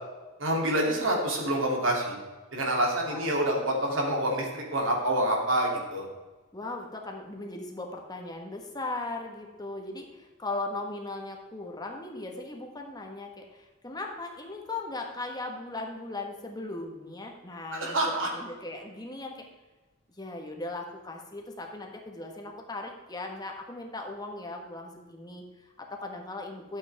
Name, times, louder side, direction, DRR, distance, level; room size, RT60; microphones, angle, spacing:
voice 1, 0.4-2.1 2.5-6.1 17.7-18.3, right 1 dB, 70° right, -1 dB, 2.8 m, -27 dB
voice 2, 6.5-19.4 20.2-26.8, left 2 dB, 20° left, 2 dB, 1.3 m, -38 dB
12.5 x 8.1 x 3.5 m, 1.2 s
head